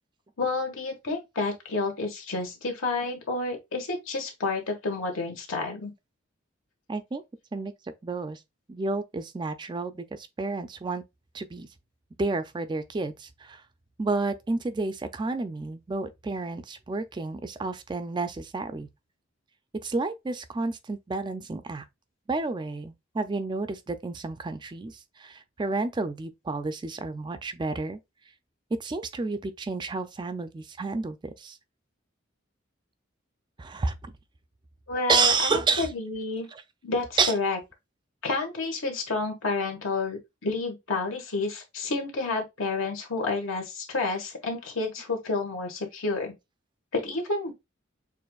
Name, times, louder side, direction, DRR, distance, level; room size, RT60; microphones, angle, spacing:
voice 1, 0.4-5.9 34.9-36.5 36.8-37.6 38.2-46.3 46.9-47.5, left 3 dB, 85° left, 1.5 m, -30 dB
voice 2, 6.9-7.2 7.5-7.7 8.0-8.4 8.7-11.0 11.3-11.7 12.2-13.6 14.0-18.9 19.8-21.8 22.3-28.0 28.8-31.6 33.6-33.9 35.1-35.9 36.5-36.6 37.2-37.4, right 3 dB, 25° right, 0.3 m, -30 dB
6.6 x 2.5 x 2.3 m
head